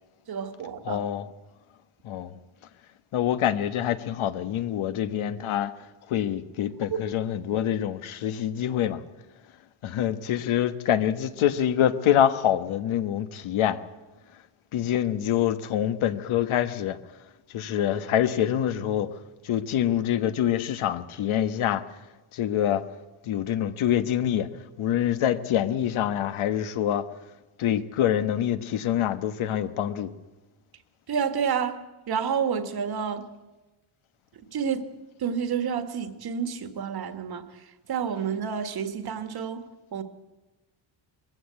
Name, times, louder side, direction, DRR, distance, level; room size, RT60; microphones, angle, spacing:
voice 1, 0.3-1.0 31.1-31.8 32.1-33.2 34.5-34.9 35.2-37.5 37.9-39.7 39.9-40.0, right 7 dB, 45° right, 9 dB, 1.7 m, -29 dB
voice 2, 0.8-1.3 2.0-2.4 3.1-5.7 6.1-9.0 9.8-13.8 14.7-17.0 17.5-19.1 19.4-21.8 22.3-22.8 23.3-24.5 24.8-27.1 27.6-30.1, left 10 dB, 75° left, 11 dB, 1.4 m, -25 dB
21.0 x 15.5 x 8.4 m, 1.1 s
cardioid pair, 155°, 50 cm